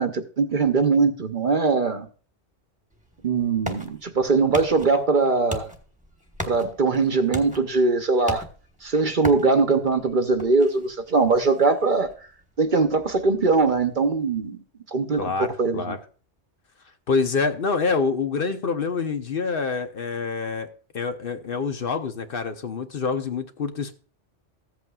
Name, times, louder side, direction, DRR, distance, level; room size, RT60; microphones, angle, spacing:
voice 1, 0.0-2.1 3.2-5.7 6.5-8.4 8.8-12.1 12.6-14.6 14.9-16.0, right 4 dB, 50° right, 0.9 m, -21 dB
sound 1, 2.9-14.4, equal, 5° right, 1.2 m, -40 dB
voice 2, 15.2-16.0 17.1-20.7 20.9-23.9, left 4 dB, 55° left, 1.0 m, -26 dB
15.0 x 8.2 x 2.3 m
omnidirectional pair, 1.2 m